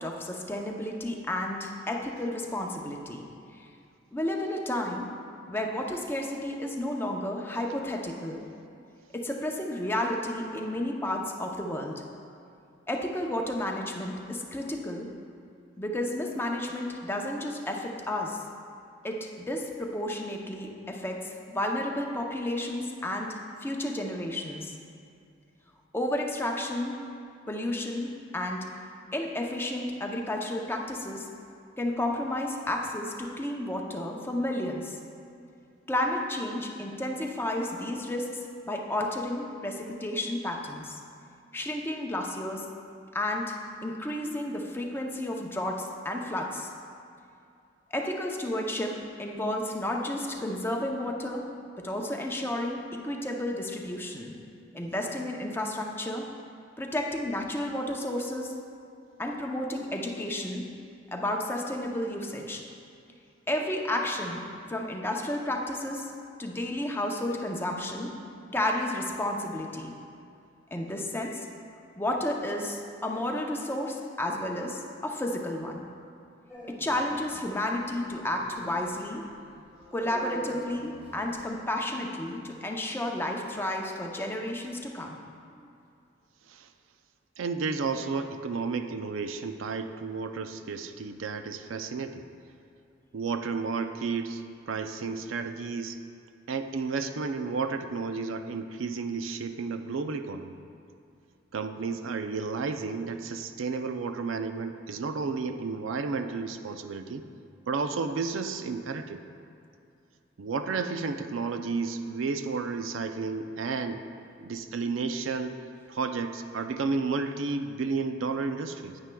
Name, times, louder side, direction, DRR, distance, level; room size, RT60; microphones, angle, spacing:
voice 1, 0.0-3.7 4.1-5.1 5.5-8.5 9.1-12.0 12.9-15.1 15.8-18.4 19.0-24.7 25.9-27.0 27.5-28.7 29.1-31.3 31.8-35.0 35.9-41.0 41.5-42.7 43.1-43.6 43.8-46.7 47.9-51.5 51.8-54.4 54.7-56.3 56.8-58.5 59.2-60.7 61.1-62.6 63.5-66.1 66.4-68.2 68.5-69.9 70.7-71.5 72.0-75.8 76.6-79.3 79.9-85.2 85.6-85.7, left 1 dB, 10° left, 0 dB, 0.6 m, -32 dB
Dog, 76.5-81.6, right 1 dB, 5° right, 1.9 m, -46 dB
voice 2, 87.4-92.2 93.1-96.0 96.5-100.6 101.5-107.2 107.7-109.2 110.4-114.0 114.4-115.6 115.9-119.0, right 4 dB, 80° right, 8 dB, 0.4 m, -32 dB
9.7 x 9.2 x 2.2 m, 2.5 s
head